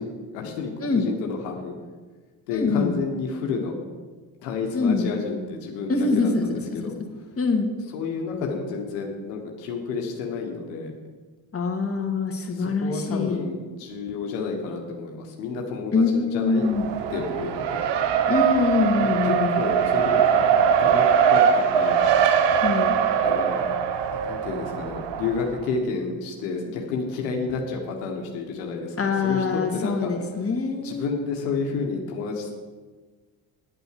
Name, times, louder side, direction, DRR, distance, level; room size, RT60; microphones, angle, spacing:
voice 1, 0.0-1.7 2.5-3.8 4.4-7.0 7.9-10.9 12.5-16.7 17.1-17.8 19.2-20.4 20.8-21.0 21.3-22.0 23.2-23.6 24.2-29.4 29.7-30.1 30.4-30.5 30.8-32.5, left 4 dB, 85° left, 1 dB, 1.6 m, -30 dB
voice 2, 2.5-3.0 4.7-5.1 5.9-7.0 7.4-7.7 11.5-13.5 15.9-16.8 18.3-19.5 22.6-23.0 29.0-31.2, left 4 dB, 30° left, 2 dB, 2.1 m, -24 dB
Race car auto racing, 16.5-25.6, right 7 dB, 65° right, 1.1 m, -22 dB
9.6 x 8.3 x 6.8 m, 1.4 s
hypercardioid pair, 60°, 46 cm